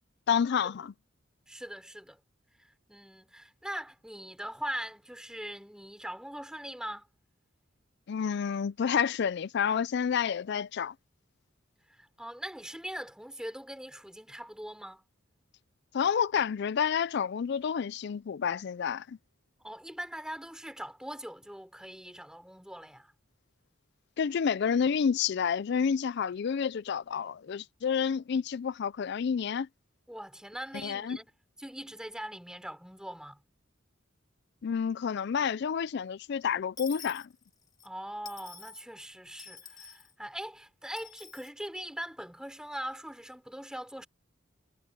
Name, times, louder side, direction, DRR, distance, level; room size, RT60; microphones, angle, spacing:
voice 1, 0.3-0.9 8.1-10.9 15.9-19.2 24.2-29.7 30.8-31.2 34.6-37.3, left 7 dB, 60° left, 0.4 m, -29 dB
voice 2, 1.5-2.2 2.6-7.1 11.9-15.0 19.6-23.1 30.1-31.3 31.6-33.4 37.8-44.1, equal, 5° right, 4.5 m, -41 dB
Dishes pots and pans / Coin (dropping), 36.8-37.9 38.3-38.8 39.4-40.1 41.0-41.5, left 6 dB, 20° left, 3.1 m, -48 dB
head